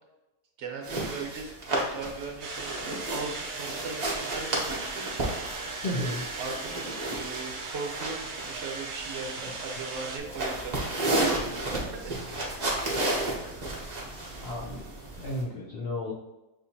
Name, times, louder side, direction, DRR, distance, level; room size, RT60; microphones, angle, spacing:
voice 1, 0.6-5.3 6.4-12.6, right 4 dB, 55° right, 0 dB, 1.0 m, -39 dB
sound 1, 0.8-15.4, right 2 dB, 35° right, 0.8 m, -33 dB
sound 2, 2.4-10.2, right 3 dB, 75° right, 0.4 m, -38 dB
voice 2, 5.8-6.2 13.4-14.0 14.4-14.9 15.2-16.1, left 1 dB, 70° left, -2 dB, 0.5 m, -34 dB
6.3 x 2.8 x 2.7 m, 1.0 s
omnidirectional pair, 1.7 m